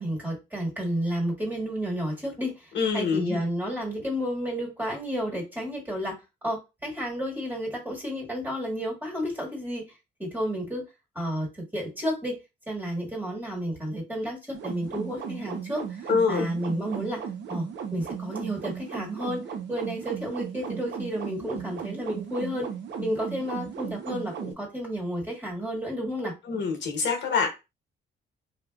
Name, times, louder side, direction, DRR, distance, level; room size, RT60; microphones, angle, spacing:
voice 1, 0.0-6.2 6.4-9.8 10.2-10.9 11.1-12.4 12.7-17.2 17.5-19.4 19.7-22.7 23.0-26.4, equal, 10° right, -2 dB, 1.7 m, -31 dB
voice 2, 2.7-3.4 16.1-16.5 26.4-27.5, left 5 dB, 65° left, 2 dB, 1.0 m, -25 dB
sound 1, 14.5-24.5, right 7 dB, 65° right, 0.8 m, -36 dB
3.7 x 2.6 x 2.3 m, 0.26 s
cardioid pair, 90°, 20 cm